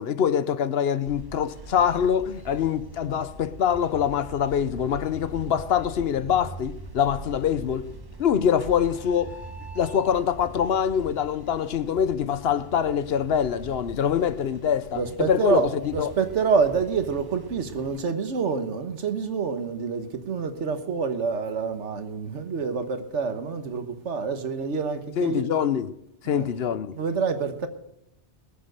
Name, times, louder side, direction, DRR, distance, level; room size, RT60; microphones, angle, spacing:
voice 1, 0.0-7.9 8.2-9.4 9.7-15.0 15.3-15.7 16.0-16.1 25.2-25.9 26.2-27.0, left 8 dB, 65° left, 0.9 m, -24 dB
sound 1, 1.0-18.0, right 2 dB, 20° right, 1.3 m, -43 dB
sound 2, 8.6-10.7, equal, 20° left, 2.0 m, -44 dB
voice 2, 14.9-25.4 26.3-26.5 26.9-27.7, right 5 dB, 85° right, 1.5 m, -27 dB
20.0 x 7.1 x 6.5 m
omnidirectional pair, 1.2 m